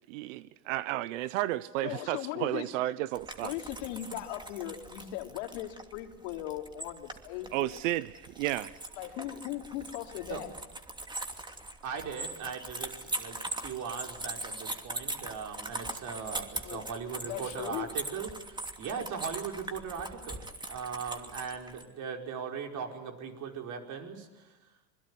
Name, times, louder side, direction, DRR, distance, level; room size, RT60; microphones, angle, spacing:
voice 1, 0.1-3.5 7.5-8.8, right 15 dB, 80° right, 17 dB, 1.0 m, -32 dB
voice 2, 1.8-2.7 3.4-7.8 9.0-10.5 16.6-16.8 17.2-17.9, left 13 dB, 75° left, 4 dB, 3.2 m, -38 dB
sound 1, 3.1-21.8, right 2 dB, 10° right, 2.7 m, -41 dB
voice 3, 11.8-24.6, right 6 dB, 50° right, 3 dB, 5.2 m, -39 dB
26.5 x 21.5 x 9.9 m, 1.1 s
supercardioid pair, 100°, 38 cm